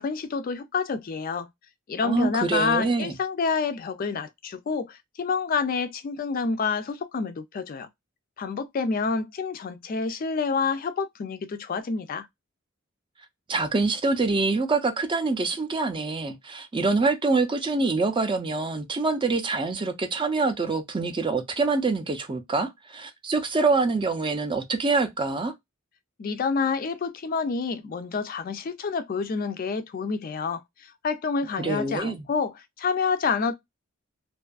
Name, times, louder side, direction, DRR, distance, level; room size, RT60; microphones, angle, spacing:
voice 1, 0.0-1.5 1.9-7.9 8.4-12.3 26.2-33.6, left 5 dB, 45° left, 0.3 m, -28 dB
voice 2, 2.0-3.1 13.5-25.5 31.6-32.3, right 3 dB, 25° right, 0.4 m, -25 dB
2.5 x 2.4 x 2.2 m
head